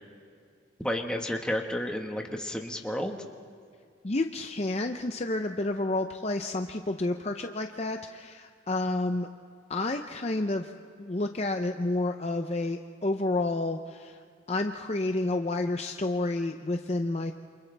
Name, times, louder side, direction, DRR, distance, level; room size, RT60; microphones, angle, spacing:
voice 1, 0.8-3.2, equal, 5° left, 2 dB, 1.4 m, -31 dB
voice 2, 4.0-9.3 9.7-10.7 11.0-14.2 14.5-17.3, left 2 dB, 30° left, 5 dB, 0.6 m, -30 dB
28.5 x 27.5 x 3.4 m, 2.2 s
head